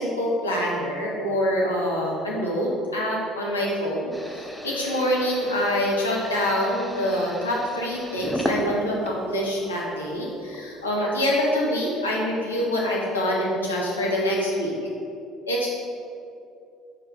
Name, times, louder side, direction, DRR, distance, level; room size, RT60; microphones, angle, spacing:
voice 1, 0.0-14.7 15.5-15.7, equal, 85° left, -4 dB, 1.1 m, -25 dB
sound 1, 4.1-9.6 10.1-10.8, equal, 5° left, 0.8 m, -34 dB
5.1 x 5.0 x 5.5 m, 2.6 s
figure-of-eight pair, 55°, 0 cm